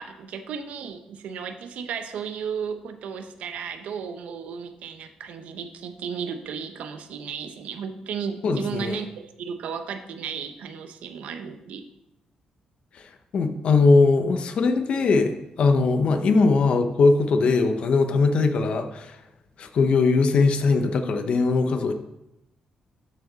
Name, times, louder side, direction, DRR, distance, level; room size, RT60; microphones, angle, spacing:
voice 1, 0.0-11.9, right 6 dB, 75° right, 8 dB, 0.8 m, -34 dB
voice 2, 8.4-9.0 13.3-19.2 19.6-21.9, left 4 dB, 50° left, 7 dB, 0.8 m, -20 dB
12.5 x 5.0 x 4.0 m, 0.88 s
cardioid pair, 155°, 2 cm